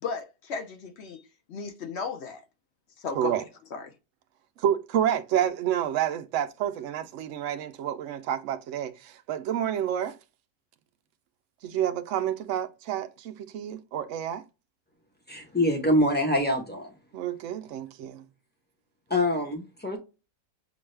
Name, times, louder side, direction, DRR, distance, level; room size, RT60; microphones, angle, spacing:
voice 1, 0.0-1.2 1.5-2.4 3.0-3.3 3.7-3.9, left 5 dB, 50° left, 0.9 m, -35 dB
voice 2, 4.6-10.2 11.6-14.4 17.1-18.3, right 10 dB, 65° right, 0.8 m, -29 dB
voice 3, 15.3-16.9 19.1-20.0, left 1 dB, 10° left, 0.7 m, -25 dB
6.1 x 2.4 x 3.2 m
omnidirectional pair, 1.8 m